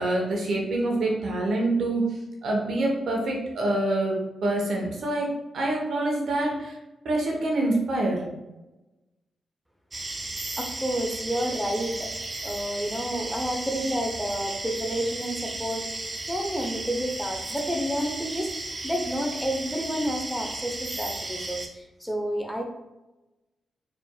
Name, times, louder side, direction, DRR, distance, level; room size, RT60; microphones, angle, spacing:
voice 1, 0.0-2.1 2.4-5.3 5.5-6.7 7.0-8.2, right 2 dB, 70° right, 0 dB, 1.0 m, -26 dB
sound 1, 9.9-21.7, right 2 dB, 35° right, 0.6 m, -35 dB
voice 2, 10.6-12.1 12.4-15.9 16.2-18.5 18.8-22.6, equal, ahead, 2 dB, 0.8 m, -30 dB
4.3 x 3.4 x 2.3 m, 1.0 s
supercardioid pair, 45°, 0 cm